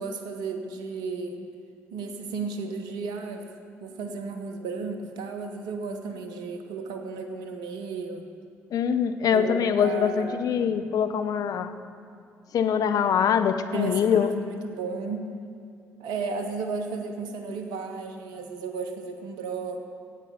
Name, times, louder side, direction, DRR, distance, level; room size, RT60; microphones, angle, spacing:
voice 1, 0.0-1.5 1.9-3.5 3.8-8.3 9.3-10.8 13.7-15.3 16.0-19.8, right 4 dB, 75° right, 6 dB, 0.8 m, -34 dB
voice 2, 8.7-11.7 12.5-14.3, left 7 dB, 60° left, 9 dB, 0.6 m, -23 dB
10.5 x 8.3 x 7.1 m, 2.3 s
hypercardioid pair, 45°, 7 cm